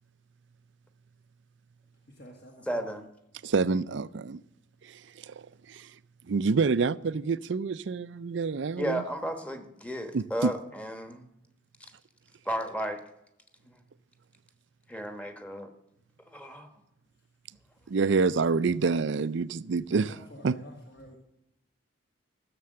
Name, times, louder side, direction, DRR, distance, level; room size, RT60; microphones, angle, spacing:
voice 1, 2.1-2.8 19.9-21.2, left 1 dB, 55° left, 1.9 m, -49 dB
voice 2, 2.7-3.1 8.8-11.3 12.4-13.0 13.7-13.8 14.9-15.7 16.3-16.7, equal, 5° left, 1.2 m, -34 dB
voice 3, 3.4-4.4 4.9-5.0 5.3-5.4 5.7-5.9 6.3-9.0 10.1-10.5 17.9-20.1 20.4-20.5, right 4 dB, 65° right, 0.4 m, -27 dB
15.0 x 6.8 x 7.7 m
head